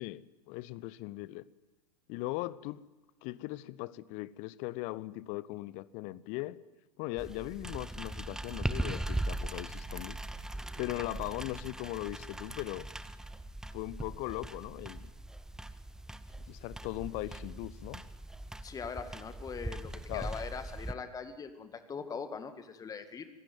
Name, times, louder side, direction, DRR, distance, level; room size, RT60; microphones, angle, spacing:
voice 1, 0.0-1.4 2.1-2.9 3.2-6.6 7.0-10.2 10.8-12.9 13.7-15.1 16.5-18.0 20.1-20.3, left 18 dB, 35° left, 19 dB, 0.8 m, -39 dB
sound 1, 7.2-20.9, right 1 dB, 5° right, 0.8 m, -40 dB
voice 2, 18.6-23.3, left 5 dB, 15° left, 9 dB, 2.0 m, -41 dB
25.5 x 17.0 x 9.5 m, 1.1 s
figure-of-eight pair, 95°, 20 cm